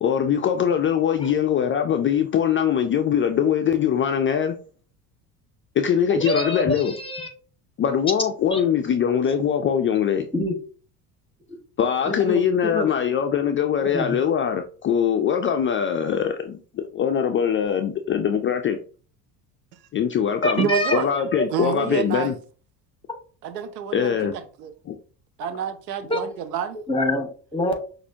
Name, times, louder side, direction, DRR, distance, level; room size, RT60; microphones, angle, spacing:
voice 1, 0.0-4.6 5.8-6.9 7.8-10.3 11.8-18.8 19.9-22.3 23.9-24.3 24.9-25.0, left 8 dB, 30° left, 0.4 m, -22 dB
voice 2, 6.1-7.3 8.5-8.6 10.3-10.5 12.0-12.9 13.8-14.2 20.4-21.4 26.1-26.2 26.9-27.7, left 1 dB, 10° left, 1.3 m, -26 dB
voice 3, 20.6-21.1 21.5-22.3 23.4-24.7 25.4-26.8, right 7 dB, 90° right, 0.6 m, -28 dB
5.9 x 2.6 x 2.7 m
hypercardioid pair, 70°, 48 cm